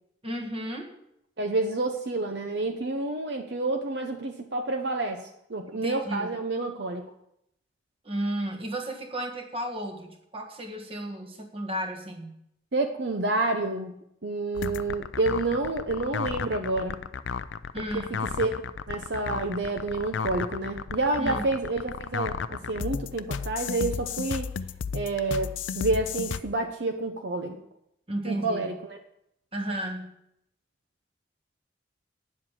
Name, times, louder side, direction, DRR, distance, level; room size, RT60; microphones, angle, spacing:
voice 1, 0.2-0.9 5.7-6.3 8.0-12.3 17.7-18.2 21.2-21.4 28.1-28.7 29.5-30.1, right 1 dB, 30° right, 3 dB, 1.6 m, -33 dB
voice 2, 1.4-7.1 12.7-14.0 14.2-17.0 17.8-18.5 18.9-24.5 24.9-27.6 28.2-29.0, right 2 dB, 60° right, 4 dB, 0.8 m, -29 dB
sound 1, 14.5-26.4, left 6 dB, 85° left, 0.5 m, -33 dB
9.9 x 7.5 x 7.3 m, 0.77 s
head